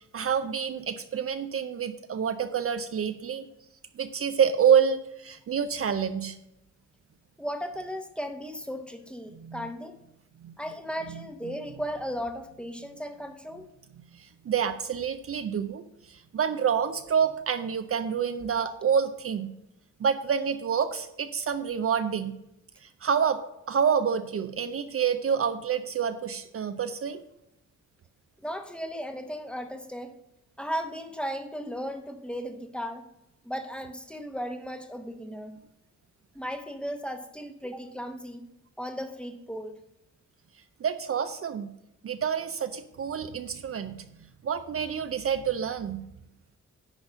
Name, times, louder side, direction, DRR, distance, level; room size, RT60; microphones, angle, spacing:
voice 1, 0.0-3.5 4.0-6.4 9.3-9.7 10.4-10.5 11.1-11.2 14.1-19.5 20.0-22.3 22.8-23.4 23.7-27.2 40.8-41.7 42.0-44.0 44.4-46.0, right 7 dB, 50° right, 10 dB, 0.5 m, -28 dB
voice 2, 7.4-9.9 10.6-13.7 28.4-30.1 30.6-33.0 33.4-35.6 36.3-38.4 38.8-39.8, equal, 5° left, 6 dB, 0.9 m, -36 dB
10.5 x 4.1 x 6.8 m, 0.85 s
wide cardioid pair, 115°, 30 cm